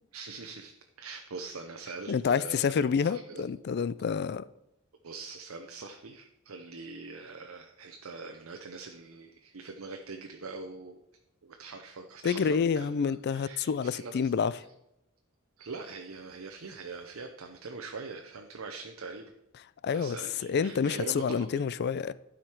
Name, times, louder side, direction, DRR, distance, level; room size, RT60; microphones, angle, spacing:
voice 1, 0.1-0.7 1.0-3.5 5.0-11.0 11.4-14.3 15.6-19.3 19.9-21.6, right 4 dB, 90° right, 0.7 m, -43 dB
voice 2, 2.1-4.5 12.2-14.5 19.8-20.2 20.5-22.1, left 6 dB, 55° left, 0.4 m, -28 dB
12.0 x 5.0 x 4.5 m
head